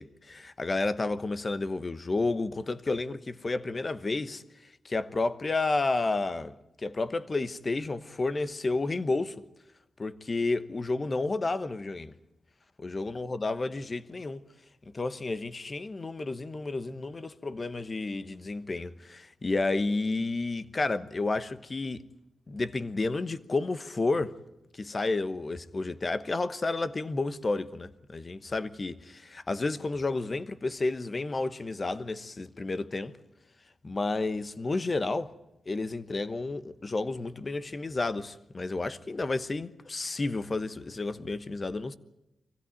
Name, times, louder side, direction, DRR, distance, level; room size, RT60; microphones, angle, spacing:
voice 1, 0.0-9.4 10.0-12.1 12.8-14.4 14.9-22.0 22.5-24.3 24.7-33.2 33.8-35.3 35.7-41.9, left 3 dB, 40° left, 1.1 m, -31 dB
24.0 x 16.0 x 9.1 m
cardioid pair, 65°, 0 cm